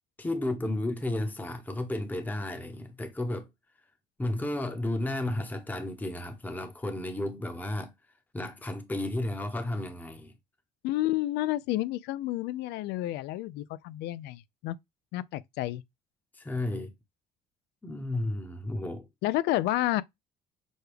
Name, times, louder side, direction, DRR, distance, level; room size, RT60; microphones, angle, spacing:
voice 1, 0.2-3.5 4.2-7.9 8.3-10.3 16.3-16.9 17.8-19.1, left 1 dB, 10° left, 0.8 m, -33 dB
voice 2, 10.8-14.8 15.1-15.8 19.2-20.0, left 15 dB, 85° left, 0.4 m, -30 dB
6.2 x 2.3 x 3.3 m
cardioid pair, 110°, 17 cm